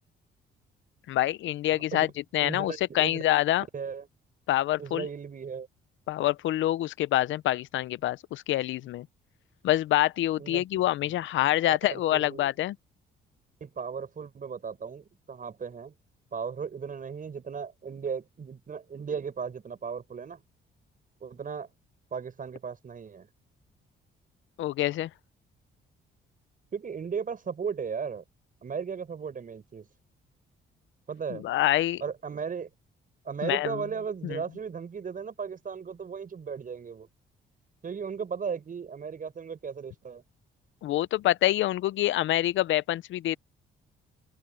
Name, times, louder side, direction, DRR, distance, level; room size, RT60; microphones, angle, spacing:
voice 1, 1.1-2.1 2.3-3.6 4.5-5.1 6.1-9.1 9.6-12.8 24.6-25.1 31.3-32.0 33.4-33.7 34.2-34.4 40.8-43.4, left 14 dB, 75° left, 0.6 m, -26 dB
voice 2, 1.7-2.1 2.4-3.2 3.7-4.1 4.8-5.7 10.4-10.6 11.0-11.1 11.7-12.5 13.6-15.9 16.3-20.4 21.2-21.7 22.1-23.3 26.7-28.2 28.6-29.9 31.1-31.5 32.0-32.7 33.2-37.1 37.8-40.2, right 6 dB, 45° right, 6.4 m, -36 dB
open air
cardioid pair, 90°, 20 cm